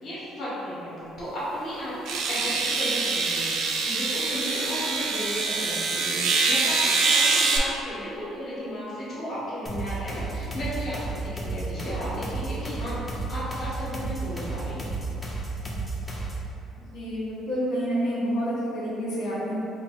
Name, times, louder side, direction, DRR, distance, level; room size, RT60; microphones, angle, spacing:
voice 1, 0.0-14.9, equal, 45° left, -9 dB, 1.0 m, -34 dB
sound 1, 1.2-1.3 2.0-7.6, right 4 dB, 70° right, 0.4 m, -24 dB
sound 2, 9.7-16.5, right 3 dB, 15° left, 0.5 m, -33 dB
voice 2, 16.9-19.5, equal, 85° left, -9 dB, 1.0 m, -28 dB
2.9 x 2.5 x 4.3 m, 2.9 s
cardioid pair, 150°, 0 cm